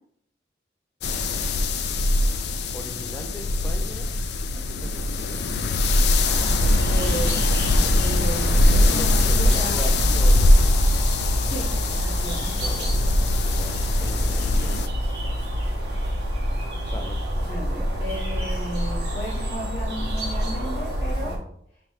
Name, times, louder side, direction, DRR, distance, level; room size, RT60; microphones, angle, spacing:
sound 1, 1.0-14.9, left 2 dB, 70° left, 0.4 m, -22 dB
voice 1, 2.7-4.1 4.5-5.4 8.8-10.8 12.5-14.9 16.8-17.5 17.9-18.0, equal, 10° left, 4 dB, 0.4 m, -39 dB
sound 2, 6.2-21.4, equal, 70° right, 1.0 m, -27 dB
voice 2, 6.9-9.9 11.4-12.6 17.5-21.4, right 1 dB, 40° left, -7 dB, 1.0 m, -34 dB
5.1 x 2.9 x 3.1 m, 0.69 s
head